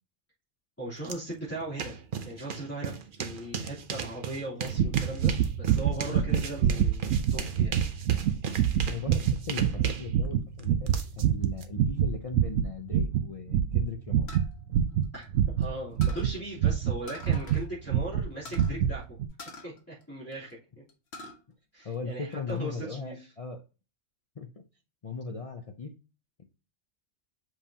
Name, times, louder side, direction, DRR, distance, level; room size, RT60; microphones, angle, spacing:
voice 1, 0.8-1.9 2.2-5.3 5.6-7.7 15.1-15.3 15.6-19.0 19.6-20.8 21.7-23.3, right 1 dB, 10° left, -10 dB, 3.1 m, -39 dB
sound 1, 1.0-1.2 1.5-11.6, right 6 dB, 50° right, 0.8 m, -37 dB
sound 2, 4.7-17.6 17.9-18.3 18.5-18.9 19.2-19.3, right 9 dB, 90° right, 1.0 m, -26 dB
voice 2, 8.8-14.3 18.5-18.9 21.8-23.6 24.4-24.5 25.0-25.9 26.4-26.5, left 5 dB, 40° left, 4 dB, 0.6 m, -38 dB
sound 3, 14.3-15.6 16.0-16.3 17.1-17.7 18.0-18.1 18.4-18.7 19.4-20.5 20.9-21.4 21.8-22.6, left 2 dB, 60° left, 1.4 m, -46 dB
7.6 x 5.2 x 2.8 m, 0.32 s
omnidirectional pair, 1.2 m